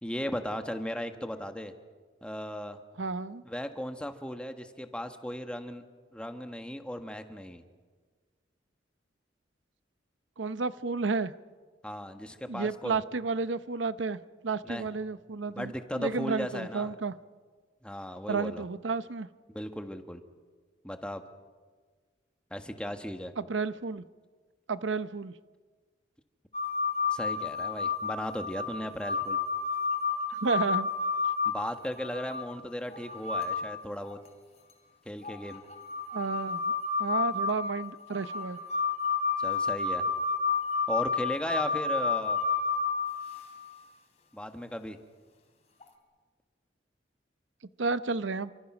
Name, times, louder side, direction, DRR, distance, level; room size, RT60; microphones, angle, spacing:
voice 1, 0.0-1.7 2.2-2.8 3.4-5.8 6.1-7.6 11.8-13.0 14.6-14.9 15.5-16.9 17.8-18.6 19.5-20.2 20.8-21.2 22.5-23.3 27.1-29.4 31.4-34.2 35.0-35.6 39.4-40.1 40.9-42.4 44.3-45.0, equal, 5° left, 6 dB, 1.4 m, -36 dB
voice 2, 3.0-3.4 10.4-11.3 12.4-17.1 18.3-19.3 23.4-24.0 24.7-25.3 30.4-30.9 36.1-36.7 37.0-38.6 47.8-48.5, right 4 dB, 90° right, 14 dB, 0.8 m, -31 dB
sound 1, 26.5-32.4 32.9-33.8 34.0-34.1 35.2-43.7 45.8-45.9, left 5 dB, 35° left, 3.7 m, -30 dB
28.0 x 25.0 x 6.1 m, 1.5 s
head